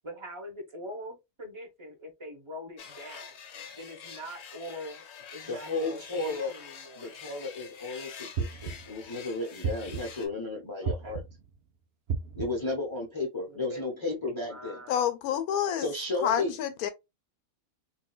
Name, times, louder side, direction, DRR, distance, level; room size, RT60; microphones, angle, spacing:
voice 1, 0.0-3.3 3.7-5.0 5.3-7.3 10.8-11.2 13.5-15.0, equal, 25° right, 0.7 m, -43 dB
sound 1, 2.8-10.3, left 7 dB, 55° left, 0.9 m, -46 dB
voice 2, 5.5-6.5 7.0-11.2 12.3-14.8 15.8-16.6, left 3 dB, 25° left, 0.7 m, -33 dB
sound 2, 8.4-9.0 9.6-10.3 10.9-11.5 12.1-12.7, right 5 dB, 75° right, 0.5 m, -33 dB
voice 3, 14.9-15.9 16.2-16.9, left 9 dB, 85° left, 1.1 m, -28 dB
3.9 x 2.5 x 2.2 m
omnidirectional pair, 1.5 m